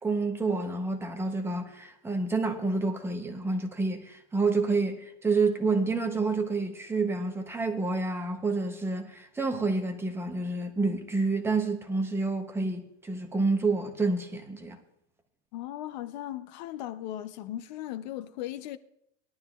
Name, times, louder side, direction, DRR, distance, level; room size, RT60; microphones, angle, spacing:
voice 1, 0.0-14.8, right 3 dB, 5° right, 0.7 m, -28 dB
voice 2, 15.5-18.8, left 13 dB, 40° left, 0.5 m, -37 dB
20.0 x 11.5 x 2.3 m
supercardioid pair, 160°, 35 cm